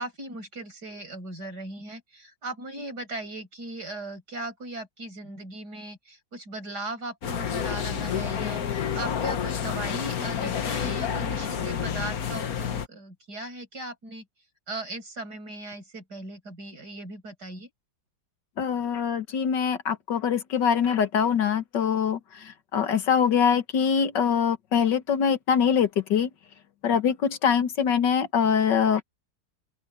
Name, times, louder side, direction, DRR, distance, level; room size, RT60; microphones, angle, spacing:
voice 1, 0.0-14.3 14.7-17.7, right 2 dB, 60° right, 7.8 m, -38 dB
sound 1, 7.2-12.9, left 8 dB, 55° left, 1.6 m, -29 dB
voice 2, 18.6-26.3 26.8-29.0, left 7 dB, 70° left, 1.9 m, -24 dB
open air
omnidirectional pair, 2.0 m